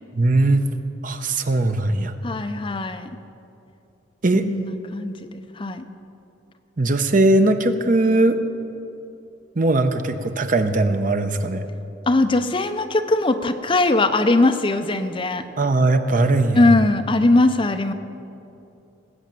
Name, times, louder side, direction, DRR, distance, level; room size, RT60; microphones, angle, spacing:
voice 1, 0.2-0.7 1.0-2.1 4.2-4.5 6.8-8.4 9.6-11.7 15.6-16.6, right 2 dB, 45° right, 8 dB, 0.8 m, -19 dB
voice 2, 2.2-3.1 4.3-5.9 12.1-15.4 16.5-17.9, left 2 dB, 30° left, 8 dB, 0.6 m, -20 dB
19.0 x 8.2 x 7.5 m, 2.7 s
head